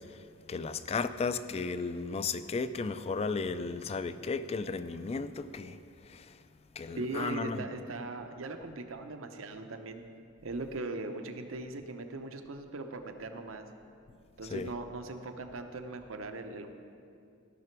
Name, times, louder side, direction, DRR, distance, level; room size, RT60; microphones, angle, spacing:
voice 1, 0.5-5.8 6.1-6.3 6.8-7.6 14.5-14.7, left 4 dB, 30° left, 13 dB, 0.3 m, -34 dB
voice 2, 6.9-10.0 10.4-13.6 14.4-16.7, right 2 dB, 85° right, 6 dB, 0.8 m, -39 dB
15.5 x 5.9 x 4.5 m, 2.5 s
head